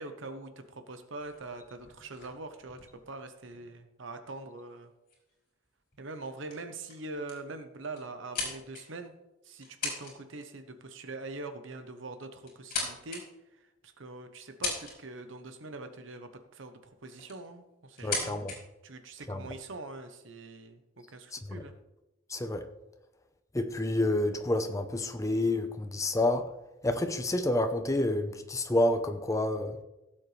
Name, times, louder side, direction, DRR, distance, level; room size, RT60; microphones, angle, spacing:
voice 1, 0.0-4.9 6.0-9.1 9.4-13.2 13.5-18.4 18.8-21.7, right 2 dB, 70° right, 0.9 m, -43 dB
sound 1, 1.2-3.8 4.7-4.8 5.1-5.3 5.9-6.2 6.5-6.6 6.9-7.5 7.9-9.1 9.6-10.1 10.4-10.7 11.8-11.9 12.4-13.2 13.8-13.9 14.4-15.2 16.5-16.6 17.1-17.5 17.9-18.6, left 4 dB, 45° left, 4.3 m, -38 dB
voice 2, 18.0-18.5 19.3-19.4 21.5-21.6 22.3-22.6 23.5-26.5 26.8-29.8, left 1 dB, 15° left, 0.8 m, -29 dB
16.5 x 7.6 x 3.3 m
head